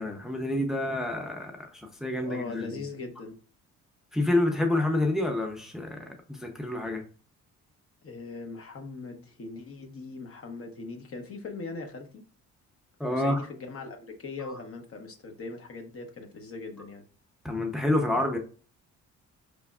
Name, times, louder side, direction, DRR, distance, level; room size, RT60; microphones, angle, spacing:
voice 1, 0.0-1.6 2.0-2.7 4.1-7.0 13.0-13.4 17.4-18.4, left 1 dB, ahead, 3 dB, 0.6 m, -28 dB
voice 2, 2.2-3.4 8.0-12.2 13.1-17.0, left 3 dB, 45° left, 5 dB, 0.9 m, -40 dB
5.0 x 3.4 x 2.3 m, 0.40 s
cardioid pair, 90°, 30 cm